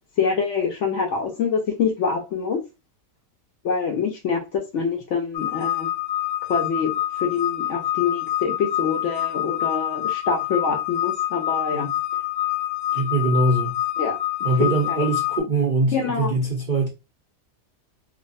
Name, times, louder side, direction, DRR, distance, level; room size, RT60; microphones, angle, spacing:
voice 1, 0.2-2.6 3.6-5.9 6.5-6.9 7.2-11.9 14.0-14.2 14.6-15.0 15.9-16.3, left 5 dB, 60° left, 0.8 m, -25 dB
sound 1, 5.3-15.4, left 13 dB, 75° left, 1.5 m, -26 dB
voice 2, 12.9-13.8 14.4-16.9, right 2 dB, 55° right, 0.5 m, -22 dB
3.0 x 2.4 x 2.6 m
omnidirectional pair, 1.8 m